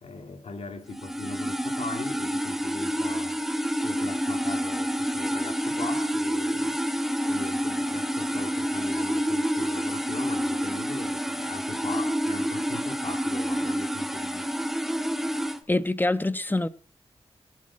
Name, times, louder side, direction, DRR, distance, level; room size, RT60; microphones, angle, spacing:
voice 1, 0.0-3.4 3.8-6.8 7.2-14.7, left 4 dB, 80° left, 2.9 m, -40 dB
sound 1, 0.9-15.6, equal, 5° right, 1.6 m, -28 dB
voice 2, 15.7-16.7, left 2 dB, 20° left, 1.1 m, -25 dB
22.5 x 7.7 x 4.4 m
cardioid pair, 55°, 11 cm